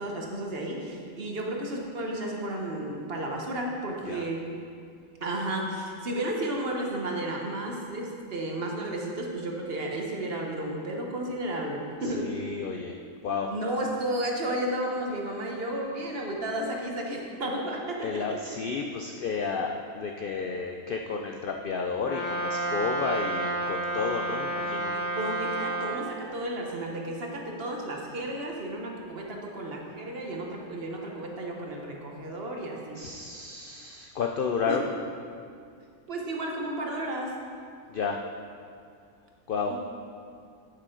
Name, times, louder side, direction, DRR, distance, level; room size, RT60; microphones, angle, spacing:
voice 1, 0.0-4.4 5.2-12.3 13.5-18.5 24.9-33.0 34.7-34.8 36.1-37.3 39.7-39.8, right 1 dB, 50° right, 0 dB, 1.2 m, -33 dB
voice 2, 12.0-13.0 13.2-13.5 18.0-24.9 33.0-34.8 37.9-38.2 39.5-39.8, left 5 dB, 65° left, 3 dB, 0.5 m, -31 dB
Brass instrument, 22.0-26.0, right 2 dB, 10° left, 1.3 m, -30 dB
8.6 x 8.2 x 3.8 m, 2.3 s
omnidirectional pair, 1.4 m